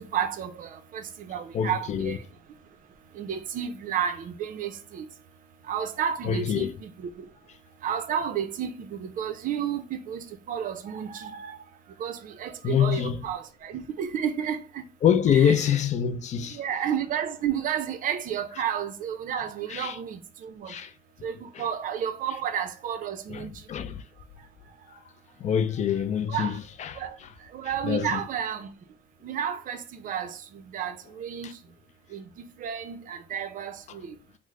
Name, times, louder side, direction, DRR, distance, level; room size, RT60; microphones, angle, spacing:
voice 1, 0.0-2.2 3.2-5.0 5.7-6.9 7.8-8.7 9.0-11.6 12.0-14.6 15.5-15.6 16.5-20.7 21.2-21.3 21.6-23.5 26.3-26.5 27.0-27.1 27.5-28.7 29.2-30.4 30.7-31.5 32.1-32.2 32.6-33.8, right 8 dB, 55° right, 0.5 m, -31 dB
voice 2, 1.5-2.2 6.2-6.8 12.6-13.2 15.0-16.6 18.5-18.6 19.7-20.0 20.7-20.9 21.5-21.7 23.3-24.0 25.4-27.3 27.6-28.3 31.4-31.5 33.9-34.0, left 8 dB, 45° left, 0.4 m, -26 dB
3.2 x 2.0 x 3.5 m
cardioid pair, 110°, 17 cm